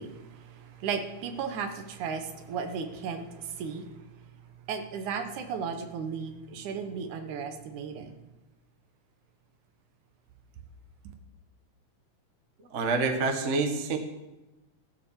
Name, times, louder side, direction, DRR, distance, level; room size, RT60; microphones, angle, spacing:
voice 1, 0.0-3.9 4.7-8.1, right 6 dB, 75° right, 7 dB, 2.5 m, -35 dB
voice 2, 12.6-14.0, right 4 dB, 55° right, 5 dB, 0.8 m, -27 dB
15.5 x 7.6 x 7.3 m, 1.0 s
omnidirectional pair, 3.6 m